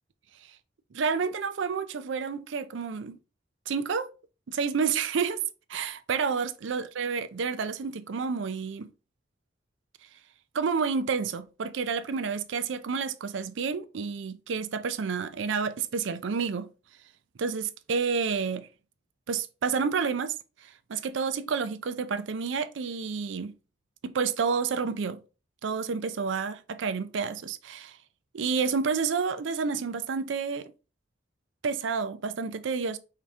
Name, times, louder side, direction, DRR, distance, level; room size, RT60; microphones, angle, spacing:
voice 1, 0.9-3.2 3.7-4.1 4.5-8.9 10.5-16.7 17.4-18.7 19.3-20.3 20.6-23.5 24.0-25.2 25.6-28.0 28.3-30.7 31.6-33.0, right 5 dB, 70° right, 0.4 m, -30 dB
5.0 x 2.8 x 3.5 m
head